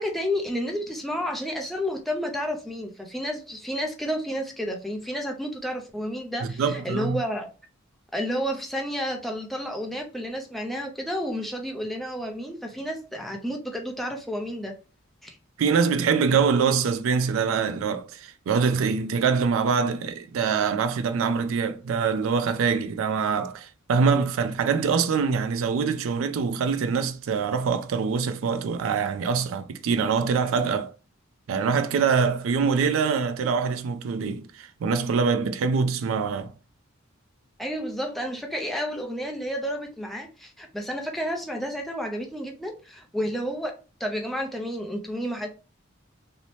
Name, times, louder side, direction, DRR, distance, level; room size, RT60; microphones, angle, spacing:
voice 1, 0.0-7.5 8.1-14.7 15.2-15.4 37.6-43.7 44.0-45.5, equal, ahead, 0.4 m, -31 dB
voice 2, 6.4-7.2 15.6-30.9 31.5-36.5, right 5 dB, 75° right, 0.3 m, -24 dB
2.7 x 2.0 x 3.0 m
head